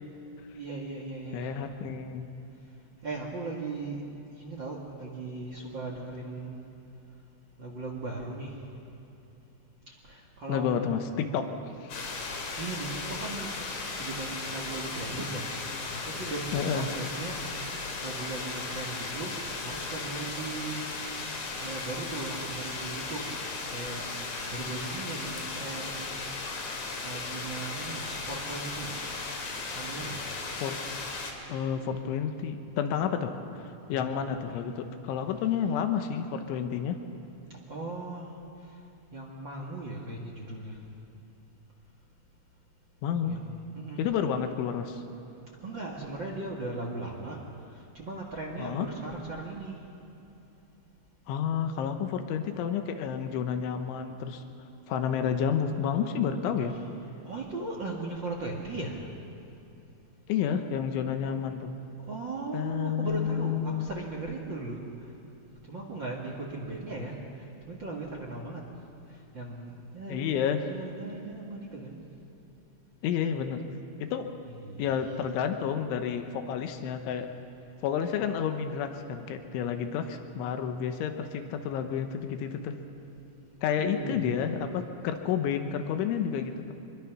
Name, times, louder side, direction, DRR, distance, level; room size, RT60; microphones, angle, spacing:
voice 1, 0.5-1.6 3.0-4.0 4.4-6.6 7.6-8.6 9.9-10.8 12.6-13.5 14.0-15.5 15.9-17.4 18.0-20.9 21.6-23.2 23.7-26.1 27.0-29.0 29.7-30.3 33.9-34.6 37.5-38.4 39.1-40.8 43.3-44.1 45.6-47.4 47.7-49.8 56.7-57.0 57.2-59.1 62.1-65.1 65.7-68.6 69.1-72.0 74.4-75.0 83.8-84.4, right 2 dB, 70° right, -1 dB, 1.1 m, -38 dB
voice 2, 1.3-2.3 10.5-11.5 11.8-12.0 16.5-16.9 30.6-30.8 31.5-37.0 43.0-43.4 44.0-45.0 48.6-48.9 51.3-54.4 54.9-56.8 60.3-61.7 62.5-63.9 70.1-70.6 73.0-73.7 74.0-74.3 74.8-77.3 77.8-82.8 83.6-86.7, left 8 dB, 85° left, 7 dB, 3.5 m, -30 dB
sound 1, 11.9-31.3, left 3 dB, 45° left, 2.9 m, -36 dB
25.5 x 22.5 x 6.0 m, 2.9 s
omnidirectional pair, 5.3 m